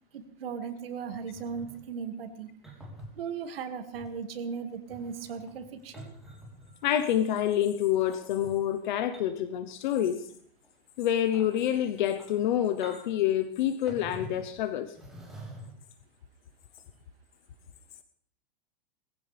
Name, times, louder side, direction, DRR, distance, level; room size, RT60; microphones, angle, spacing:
voice 1, 0.1-2.5 3.2-6.1, right 6 dB, 80° right, 6 dB, 2.3 m, -37 dB
sound 1, 1.1-1.8 2.6-3.1 3.9-4.1 4.7-6.8 8.0-8.6 9.1-9.5 9.8-10.2 10.6-10.7 11.2-11.5 12.1-12.5 12.8-13.3 13.9-14.5 14.9-15.9 16.8-16.9, equal, ahead, 3.7 m, -47 dB
voice 2, 6.8-10.3 11.0-14.9, left 11 dB, 55° left, 10 dB, 1.0 m, -27 dB
20.5 x 15.5 x 3.5 m, 0.62 s
supercardioid pair, 165°, 29 cm